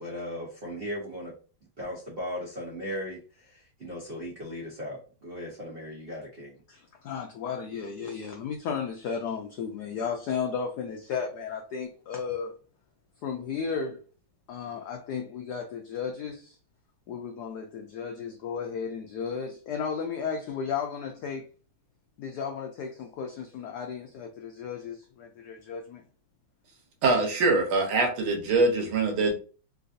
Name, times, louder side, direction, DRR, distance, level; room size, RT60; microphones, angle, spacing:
voice 1, 0.0-1.3 1.8-6.5, equal, 65° right, 0.5 m, -37 dB
voice 2, 6.7-12.5 13.2-14.0 14.5-16.6 17.1-21.5 22.2-26.0, left 6 dB, 85° left, 0.8 m, -34 dB
voice 3, 27.0-29.3, right 3 dB, 80° right, 1.7 m, -23 dB
3.7 x 2.6 x 2.4 m
omnidirectional pair, 2.3 m